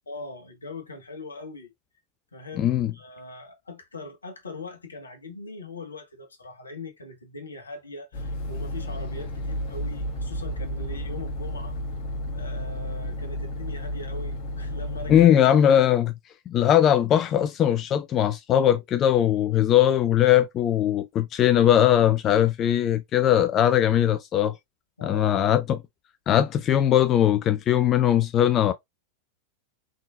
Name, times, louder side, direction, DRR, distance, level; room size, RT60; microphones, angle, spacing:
voice 1, 0.1-1.7 2.3-11.8 12.3-15.4 25.0-25.4, left 3 dB, 75° left, 1.2 m, -41 dB
voice 2, 2.6-2.9 15.1-16.1 16.5-24.6 25.0-25.8 26.3-28.7, left 10 dB, 30° left, 0.4 m, -20 dB
sound 1, 8.1-15.3, equal, 45° left, 1.6 m, -32 dB
3.7 x 3.7 x 2.4 m
figure-of-eight pair, 90°, 0 cm